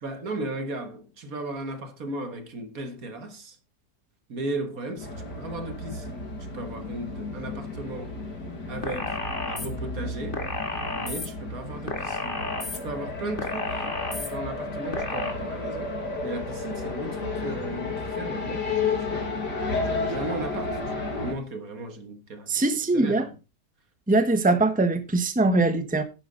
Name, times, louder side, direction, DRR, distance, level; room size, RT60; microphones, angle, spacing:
voice 1, 0.0-3.6 4.3-8.1 8.7-9.2 9.4-10.4 10.9-12.4 12.8-15.9 16.2-19.3 19.8-22.6 22.9-23.3, right 2 dB, 60° right, 1.9 m, -36 dB
sound 1, 5.0-21.3, left 3 dB, 80° left, 3.0 m, -32 dB
sound 2, 8.8-9.7 10.3-11.3 11.9-12.8 13.4-14.3 14.9-15.3, left 2 dB, 30° left, 2.2 m, -32 dB
voice 2, 22.5-23.3 24.1-26.0, right 2 dB, 5° right, 1.2 m, -22 dB
11.0 x 10.5 x 3.9 m
omnidirectional pair, 1.8 m